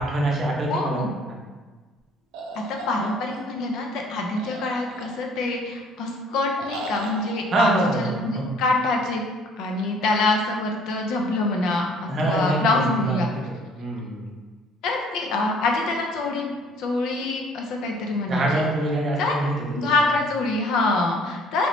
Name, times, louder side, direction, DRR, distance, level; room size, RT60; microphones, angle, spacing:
voice 1, 0.0-1.0 1.3-1.4 7.5-8.4 12.1-13.2 13.7-14.4 18.3-19.9, right 2 dB, 35° right, -2 dB, 0.6 m, -24 dB
voice 2, 0.7-1.1 2.5-9.2 9.6-13.3 14.8-16.5 16.8-18.4 19.2-19.5 19.8-21.7, left 2 dB, 70° left, 1 dB, 0.5 m, -25 dB
sound 1, 2.3-3.7 4.4-5.5 6.6-7.3, right 2 dB, 80° right, 0.4 m, -37 dB
3.0 x 2.7 x 3.0 m, 1.4 s
cardioid pair, 145°, 0 cm